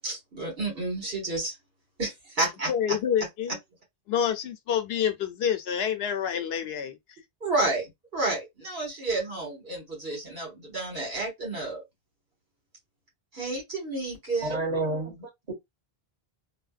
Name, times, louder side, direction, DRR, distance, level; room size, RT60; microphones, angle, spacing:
voice 1, 0.0-1.5 2.0-3.0 7.4-11.8 13.3-14.6, right 2 dB, 65° right, 2.0 m, -30 dB
voice 2, 2.7-3.6 4.1-7.0, left 8 dB, 75° left, 0.8 m, -27 dB
voice 3, 14.4-15.5, right 2 dB, 40° right, 1.4 m, -30 dB
3.3 x 2.1 x 2.4 m
omnidirectional pair, 1.1 m